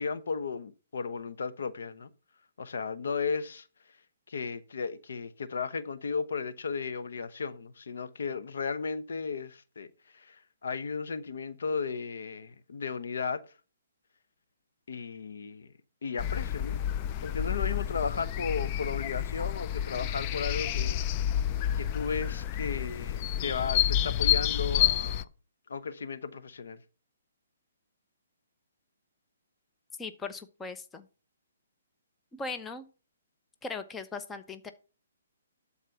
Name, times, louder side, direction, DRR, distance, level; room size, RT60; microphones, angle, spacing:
voice 1, 0.0-2.1 2.6-3.7 4.3-9.9 10.1-13.4 14.9-15.7 16.0-16.8 17.2-21.0 21.7-25.3 25.7-26.8, left 5 dB, 70° left, 0.9 m, -35 dB
sound 1, 16.2-25.2, left 11 dB, 30° left, 0.4 m, -29 dB
voice 2, 30.0-31.1 32.3-32.9 33.6-34.7, left 4 dB, 10° left, 0.8 m, -39 dB
12.5 x 4.2 x 7.0 m
hypercardioid pair, 145°, 0 cm